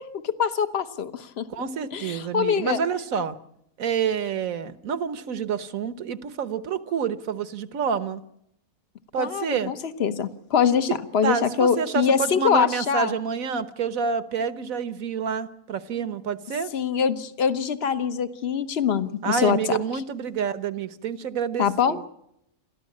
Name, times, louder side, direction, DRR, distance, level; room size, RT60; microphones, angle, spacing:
voice 1, 0.0-1.5 1.9-2.8 9.2-13.1 16.7-19.8 21.6-22.0, left 7 dB, 50° left, 10 dB, 1.3 m, -24 dB
voice 2, 1.5-3.4 3.8-8.2 9.1-9.7 10.9-11.0 11.2-16.7 19.2-22.1, right 6 dB, 75° right, 12 dB, 1.5 m, -28 dB
29.0 x 13.5 x 8.5 m, 0.78 s
omnidirectional pair, 1.4 m